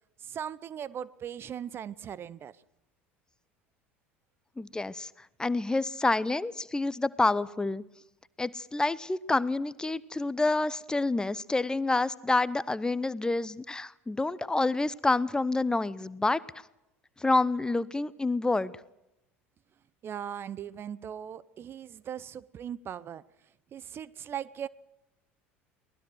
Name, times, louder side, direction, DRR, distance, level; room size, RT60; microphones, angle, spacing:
voice 1, 0.2-2.6 20.0-23.3 23.7-24.7, right 9 dB, 35° right, 0.7 m, -39 dB
voice 2, 4.6-5.1 5.4-7.8 8.4-16.4 17.2-18.7, left 2 dB, 10° left, 0.8 m, -28 dB
23.5 x 19.0 x 6.3 m
figure-of-eight pair, 70°, 7 cm